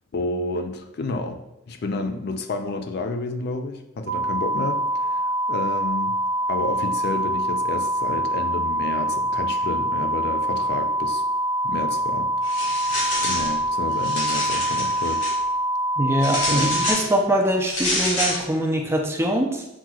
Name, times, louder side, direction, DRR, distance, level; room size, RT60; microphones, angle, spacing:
voice 1, 0.1-6.1 6.5-11.2 11.6-12.7 13.2-15.2 16.5-16.7, left 2 dB, 55° left, 7 dB, 0.4 m, -30 dB
sound 1, 4.1-16.9, right 1 dB, 60° right, 0.6 m, -25 dB
sound 2, 12.4-13.5 13.9-15.3 16.2-17.1 17.7-18.4, left 1 dB, 90° left, 1.4 m, -27 dB
voice 2, 16.0-19.7, right 1 dB, 15° right, 1 dB, 0.5 m, -23 dB
7.4 x 3.0 x 2.3 m, 0.88 s
head